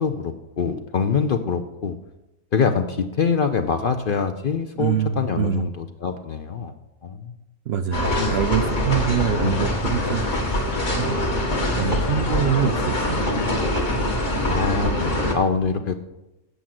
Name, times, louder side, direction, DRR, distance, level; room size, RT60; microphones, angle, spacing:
voice 1, 0.0-2.0 2.5-6.7 7.0-7.3 8.1-8.3 9.4-9.6 14.5-16.0, left 5 dB, 50° left, 7 dB, 0.7 m, -24 dB
voice 2, 4.8-5.6 7.7-10.2 10.9-13.4, right 8 dB, 65° right, 9 dB, 0.7 m, -25 dB
sound 1, 7.9-15.3, left 1 dB, 35° left, 1.6 m, -24 dB
sound 2, 9.0-14.1, left 7 dB, 75° left, 1.2 m, -35 dB
8.2 x 7.2 x 7.6 m, 0.94 s
omnidirectional pair, 1.4 m